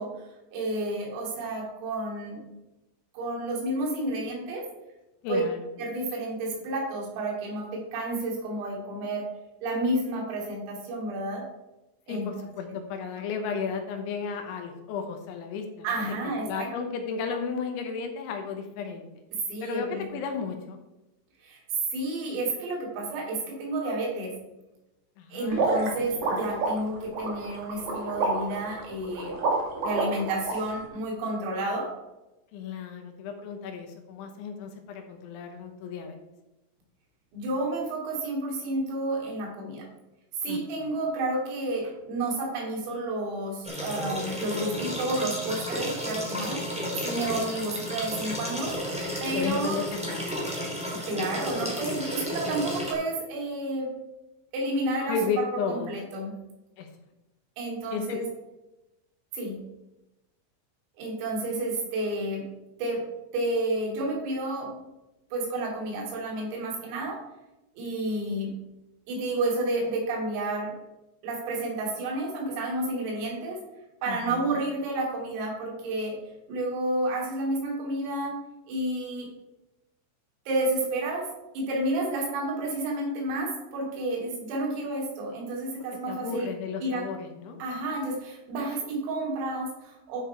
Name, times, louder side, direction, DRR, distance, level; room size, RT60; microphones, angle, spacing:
voice 1, 0.0-2.4 3.1-4.6 5.3-5.4 5.8-9.2 9.6-11.4 12.1-12.3 15.8-16.7 19.3-20.1 21.4-21.6 21.9-24.3 25.3-29.4 29.8-31.9 37.3-39.9 40.4-46.6 47.0-48.7 49.2-49.8 50.9-53.9 54.5-56.3 57.6-58.3 59.3-59.6 61.0-62.4 62.8-63.0 63.3-64.7 65.3-67.2 67.8-68.5 69.1-70.8 71.2-73.6 74.0-76.2 76.5-78.4 78.7-79.3 80.5-81.3 81.5-86.5 86.8-87.1 87.6-90.2, right 2 dB, 80° right, -1 dB, 5.2 m, -30 dB
voice 2, 5.2-5.6 12.1-16.0 16.5-19.1 19.6-20.8 25.2-25.7 26.0-26.1 32.5-36.2 40.5-40.6 49.3-50.5 55.1-55.9 56.8-56.9 57.9-58.2 74.1-74.5 86.1-87.6, left 5 dB, 75° left, 5 dB, 3.2 m, -33 dB
sound 1, 25.5-30.5, right 3 dB, 55° right, 2.3 m, -28 dB
sound 2, 43.6-52.9, equal, 5° right, 0.6 m, -33 dB
12.0 x 6.6 x 4.5 m, 0.97 s
omnidirectional pair, 5.9 m